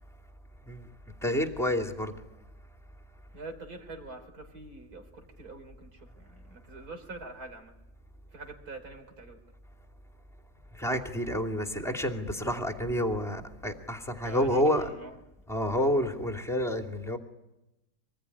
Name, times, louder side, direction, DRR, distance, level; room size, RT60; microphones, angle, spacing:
voice 1, 1.2-2.1 10.7-14.9 15.5-17.2, left 1 dB, ahead, 3 dB, 2.5 m, -29 dB
voice 2, 3.3-7.7 8.3-9.4 14.2-15.2, right 3 dB, 65° right, 6 dB, 4.2 m, -44 dB
26.0 x 20.0 x 9.9 m, 0.96 s
omnidirectional pair, 1.7 m